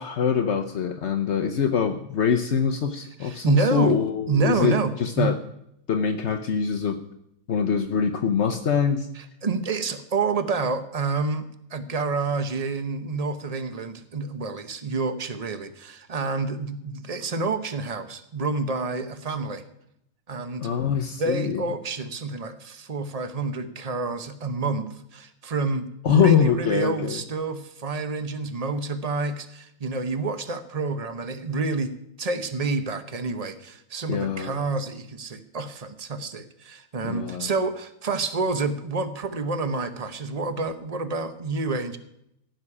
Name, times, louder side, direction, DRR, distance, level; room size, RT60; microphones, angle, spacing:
voice 1, 0.0-5.4 5.9-7.0 7.5-9.1 20.6-21.6 26.0-27.2 34.1-34.6 37.0-37.5, left 7 dB, 60° left, 5 dB, 0.7 m, -24 dB
voice 2, 3.2-4.0 4.3-5.3 9.1-19.6 20.3-20.7 21.2-24.9 25.1-42.0, right 3 dB, 65° right, 10 dB, 0.3 m, -28 dB
15.5 x 6.5 x 9.7 m, 0.79 s
omnidirectional pair, 2.2 m